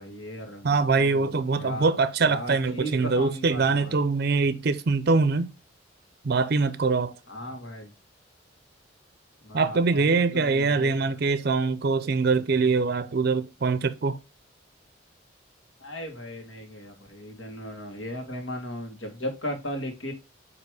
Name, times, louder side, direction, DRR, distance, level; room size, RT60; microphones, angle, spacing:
voice 1, 0.0-1.9 2.2-3.9 7.3-7.9 9.4-11.2 15.8-20.1, equal, 75° left, 1.7 m, -37 dB
voice 2, 0.6-5.5 6.2-7.1 9.5-14.2, right 4 dB, 50° right, 0.5 m, -23 dB
8.1 x 3.0 x 4.7 m
head